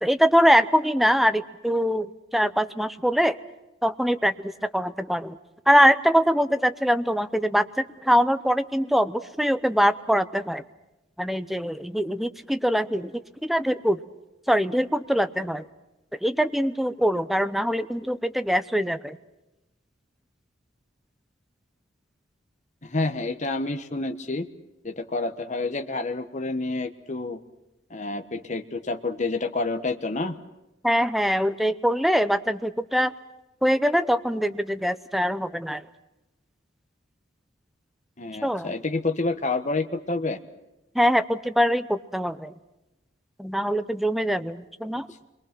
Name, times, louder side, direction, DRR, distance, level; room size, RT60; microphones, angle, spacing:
voice 1, 0.0-3.4 3.8-5.4 5.7-10.6 11.2-13.1 13.4-14.0 14.5-15.7 16.2-19.2 30.8-33.1 33.6-35.8 38.4-38.7 40.9-42.5 43.4-45.1, equal, ahead, 11 dB, 0.8 m, -23 dB
voice 2, 22.8-24.5 24.8-27.4 27.9-30.3 38.2-40.4 44.9-45.0, left 3 dB, 40° left, 7 dB, 1.3 m, -28 dB
28.0 x 23.0 x 6.0 m, 0.96 s
head